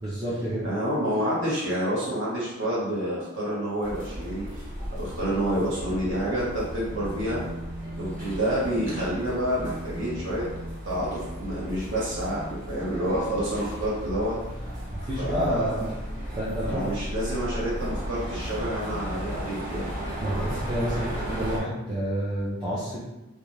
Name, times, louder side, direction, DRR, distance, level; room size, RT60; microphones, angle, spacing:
voice 1, 0.0-0.7 15.0-15.9 16.3-16.9 20.2-23.1, equal, 20° right, -9 dB, 0.4 m, -29 dB
voice 2, 0.6-4.6 4.9-7.4 8.0-10.5 10.8-14.4 15.2-15.9 16.6-19.9, equal, 55° right, -7 dB, 1.1 m, -28 dB
sound 1, 3.8-21.6, equal, 35° right, 0.8 m, -35 dB
2.3 x 2.2 x 3.1 m, 0.99 s
head